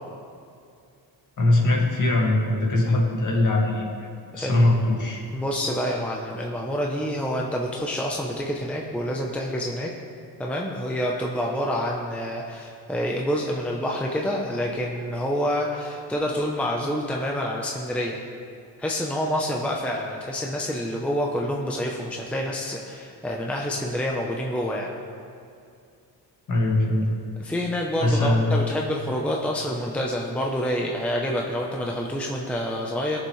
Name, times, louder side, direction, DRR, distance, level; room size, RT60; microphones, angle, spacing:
voice 1, 1.4-5.3 26.5-27.1 28.0-28.5, left 2 dB, 45° left, -2 dB, 2.0 m, -22 dB
voice 2, 4.4-4.7 5.3-9.9 10.4-18.2 18.8-24.9 27.4-33.2, equal, 5° left, -1 dB, 0.7 m, -27 dB
20.5 x 7.0 x 3.2 m, 2.4 s
cardioid pair, 160°, 41 cm